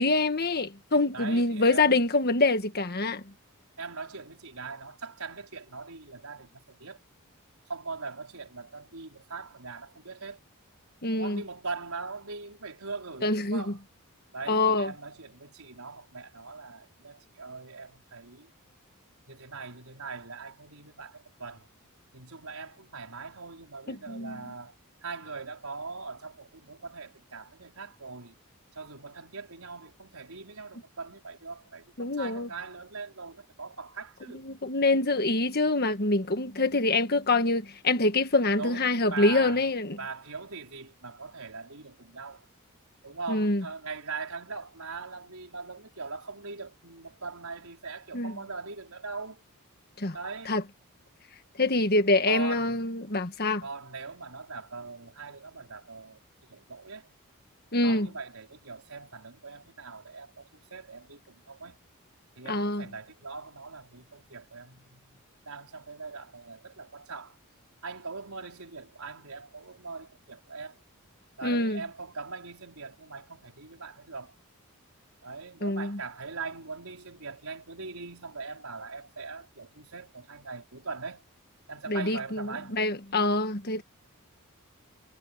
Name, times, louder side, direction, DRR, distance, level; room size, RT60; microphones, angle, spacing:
voice 1, 0.0-3.2 11.0-11.4 13.2-13.6 14.5-14.9 23.9-24.4 32.0-32.5 34.4-40.0 43.3-43.6 48.1-48.3 50.0-50.1 50.5-50.6 51.6-53.6 57.7-58.1 62.5-62.8 71.4-71.8 75.6-76.0 81.9-83.8, left 2 dB, 45° left, 1.6 m, -25 dB
voice 2, 1.1-2.0 3.8-7.0 7.7-10.4 11.1-13.8 14.3-18.5 19.3-21.7 22.1-24.7 25.0-28.3 28.7-34.5 38.6-39.7 40.0-42.4 43.0-49.4 50.1-50.6 52.3-52.8 53.6-56.2 56.5-57.1 57.8-61.8 62.4-65.2 65.4-67.4 67.8-70.8 71.4-74.3 75.2-81.2 81.7-82.8, right 4 dB, 75° right, 4.7 m, -41 dB
head